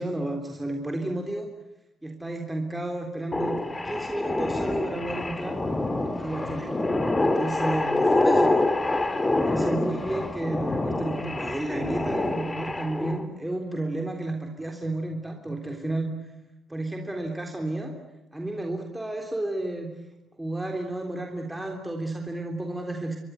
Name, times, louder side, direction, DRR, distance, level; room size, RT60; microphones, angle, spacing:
voice 1, 0.0-1.5 2.0-3.6 3.8-5.6 6.1-6.8 7.2-8.6 9.3-16.3 16.7-17.9 18.3-19.9 20.4-23.2, right 2 dB, 10° right, 2 dB, 3.5 m, -32 dB
sound 1, 3.3-13.2, left 2 dB, 20° left, 2.6 m, -26 dB
27.5 x 22.5 x 8.1 m, 0.89 s
cardioid pair, 90°, 0 cm